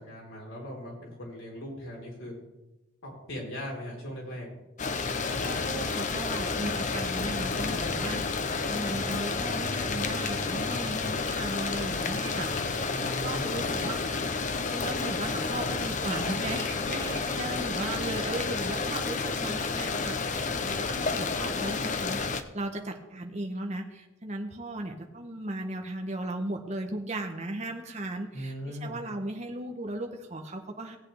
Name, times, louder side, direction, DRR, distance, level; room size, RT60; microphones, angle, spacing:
voice 1, 0.0-2.3 3.0-4.5 12.8-13.7 28.3-29.0, equal, 75° left, -3 dB, 3.9 m, -39 dB
sound 1, 4.8-22.4, left 4 dB, 35° left, 0.6 m, -30 dB
voice 2, 5.2-31.0, right 1 dB, 35° right, 4 dB, 0.8 m, -37 dB
sound 2, 12.1-18.6, right 3 dB, 50° right, 1.4 m, -48 dB
17.0 x 8.2 x 3.4 m, 1.0 s
head